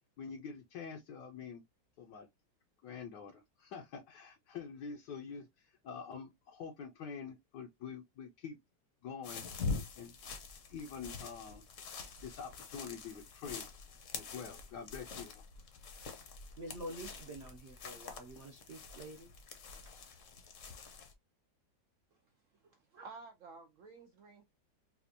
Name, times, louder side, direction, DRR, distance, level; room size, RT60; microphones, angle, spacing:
voice 1, 0.2-1.6 2.0-2.3 2.8-8.6 9.0-9.4 9.9-10.1 10.7-11.6 12.2-13.6 14.1-15.4, left 6 dB, 75° left, 1.2 m, -46 dB
sound 1, 9.2-21.1, left 4 dB, 55° left, 1.0 m, -45 dB
voice 2, 16.6-19.3, right 1 dB, 55° right, 0.8 m, -47 dB
voice 3, 22.6-24.4, right 4 dB, 80° right, 0.7 m, -53 dB
4.2 x 2.4 x 2.6 m
omnidirectional pair, 1.9 m